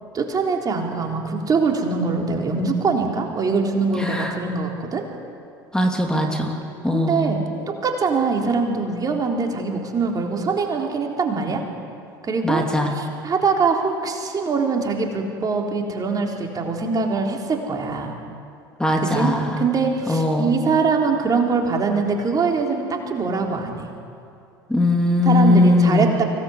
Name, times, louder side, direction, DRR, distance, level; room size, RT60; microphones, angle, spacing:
voice 1, 0.1-5.0 6.9-11.6 12.2-18.1 19.0-23.9 25.2-26.2, right 4 dB, 30° right, 1 dB, 3.6 m, -23 dB
voice 2, 4.0-4.3 5.7-6.6 6.8-7.3 12.4-12.9 18.8-19.6 20.1-20.5 24.7-26.0, left 2 dB, 5° left, 1 dB, 2.9 m, -19 dB
24.5 x 17.5 x 8.1 m, 2.5 s
figure-of-eight pair, 70°, 12 cm